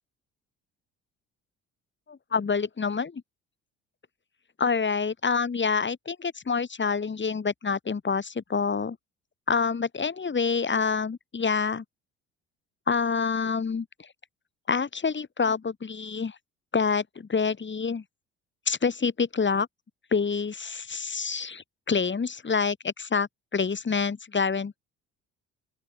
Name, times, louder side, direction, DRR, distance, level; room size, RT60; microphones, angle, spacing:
voice 1, 2.1-3.2 4.6-9.0 9.5-11.8 12.9-13.9 14.7-16.4 16.7-18.0 18.7-19.7 20.1-24.8, left 5 dB, 35° left, 7.0 m, -27 dB
open air
hypercardioid pair, 55°, 35 cm